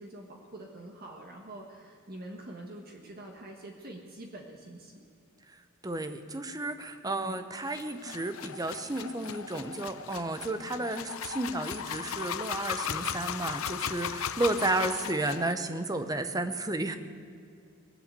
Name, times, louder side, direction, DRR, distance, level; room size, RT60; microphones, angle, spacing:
voice 1, 0.0-5.0 7.0-7.4, right 1 dB, 45° right, 1 dB, 1.5 m, -45 dB
voice 2, 5.8-17.0, right 2 dB, 20° right, 9 dB, 0.8 m, -32 dB
sound 1, 7.7-15.5, left 8 dB, 85° left, 0.7 m, -37 dB
20.5 x 7.9 x 8.3 m, 2.3 s
head